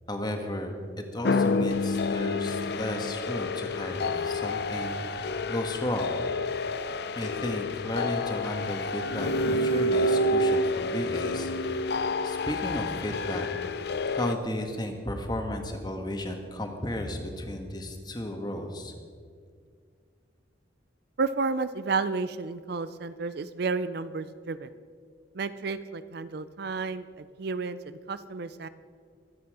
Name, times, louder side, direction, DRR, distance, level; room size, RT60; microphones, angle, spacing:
voice 1, 0.1-6.1 7.1-13.5 13.7-18.9, left 1 dB, 20° left, 4 dB, 1.4 m, -34 dB
sound 1, 1.2-14.3, left 2 dB, 55° left, 0.6 m, -28 dB
voice 2, 21.2-24.7 25.3-28.7, right 4 dB, 55° right, 13 dB, 0.5 m, -31 dB
23.5 x 8.6 x 4.9 m, 2.1 s
head